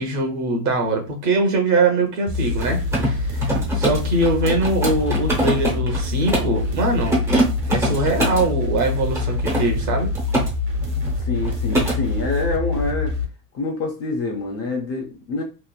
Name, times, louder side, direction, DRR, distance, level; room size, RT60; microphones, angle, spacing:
voice 1, 0.0-2.8 3.1-7.2 7.7-10.1, right 2 dB, 40° right, 3 dB, 0.9 m, -22 dB
sound 1, 2.3-13.2, left 3 dB, 70° right, 1.2 m, -25 dB
Mechanisms, 2.5-6.6 7.0-8.5 9.1-10.5 10.8-11.1 11.4-12.0, right 1 dB, 5° right, 0.6 m, -24 dB
voice 2, 11.2-13.1 13.5-15.4, left 3 dB, 35° left, 1 dB, 0.5 m, -26 dB
3.0 x 2.4 x 2.3 m, 0.34 s
supercardioid pair, 150°, 45 cm